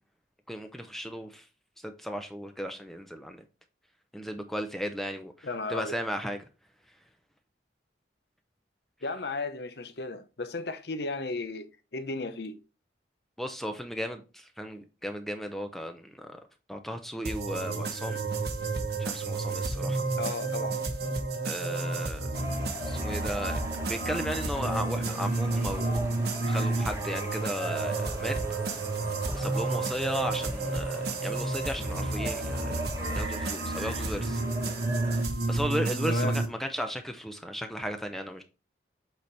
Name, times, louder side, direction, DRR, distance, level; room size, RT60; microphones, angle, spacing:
voice 1, 0.5-1.5 1.8-3.4 4.1-6.4 13.4-16.4 16.7-18.2 19.0-20.1 21.4-22.3 22.8-26.1 26.5-28.4 28.8-28.9 29.3-32.8 33.1-34.4 35.5-38.4, equal, ahead, 0.6 m, -35 dB
voice 2, 5.4-5.9 9.0-12.6 20.2-20.8 36.1-36.4, left 3 dB, 65° left, 0.8 m, -34 dB
sound 1, 17.3-36.5, right 2 dB, 60° right, 1.0 m, -31 dB
sound 2, 22.3-35.2, right 1 dB, 15° right, 1.2 m, -40 dB
7.9 x 4.3 x 3.3 m
head